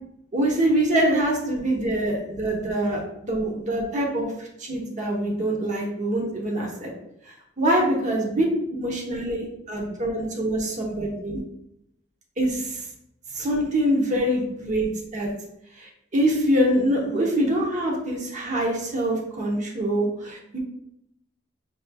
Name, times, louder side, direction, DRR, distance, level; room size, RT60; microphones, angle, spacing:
voice 1, 0.3-6.9 7.6-8.4 8.7-11.4 12.4-12.8 13.3-15.3 15.8-20.6, right 1 dB, 40° right, -1 dB, 0.8 m, -24 dB
6.6 x 3.1 x 2.2 m, 0.81 s
head